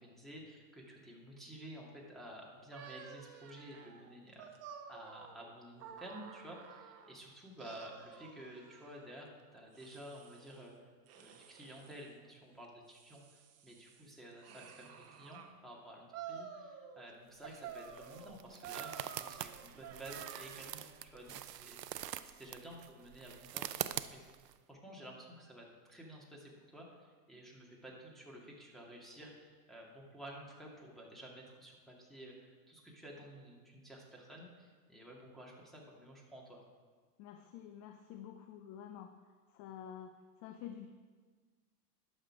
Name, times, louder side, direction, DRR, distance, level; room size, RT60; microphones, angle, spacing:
voice 1, 0.0-10.9 11.2-36.6, right 1 dB, ahead, -4 dB, 2.2 m, -52 dB
sound 1, 2.7-7.2 7.6-9.1 9.7-10.7 11.1-12.1 12.6-15.5 16.1-17.1 17.4-20.9, right 7 dB, 30° right, 1.0 m, -51 dB
sound 2, 17.3-24.5, right 12 dB, 85° right, 0.6 m, -44 dB
voice 2, 37.2-39.1 39.5-40.9, left 9 dB, 40° left, 7 dB, 0.6 m, -49 dB
11.0 x 6.6 x 4.8 m, 1.5 s
hypercardioid pair, 95°, 48 cm